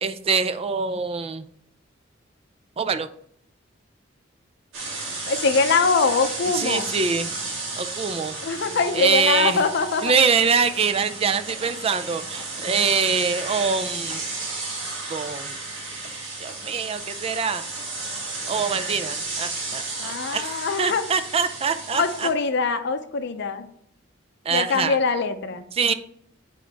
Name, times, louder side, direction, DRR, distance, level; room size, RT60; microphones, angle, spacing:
voice 1, 0.0-1.5 2.8-3.1 6.5-7.3 7.8-8.4 8.9-9.7 10.0-14.2 15.1-15.5 16.4-17.6 18.5-22.3 24.5-25.0 25.7-25.9, right 5 dB, 30° right, 12 dB, 0.4 m, -24 dB
sound 1, 4.7-22.3, right 3 dB, 85° right, 2.2 m, -33 dB
voice 2, 5.3-6.9 8.4-10.1 20.0-21.0 21.9-23.7 24.5-25.6, left 4 dB, 60° left, 7 dB, 0.6 m, -23 dB
9.0 x 3.8 x 3.4 m, 0.67 s
head